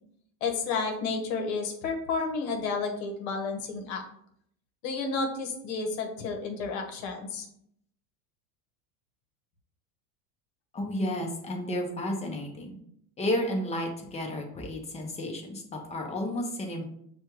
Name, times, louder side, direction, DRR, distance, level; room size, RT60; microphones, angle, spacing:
voice 1, 0.4-4.0 4.8-7.5, left 4 dB, 65° left, 3 dB, 1.0 m, -31 dB
voice 2, 10.7-12.7 13.2-15.6 15.9-16.8, left 1 dB, 15° left, 2 dB, 0.6 m, -32 dB
6.2 x 2.3 x 2.9 m, 0.71 s
supercardioid pair, 130°, 45 cm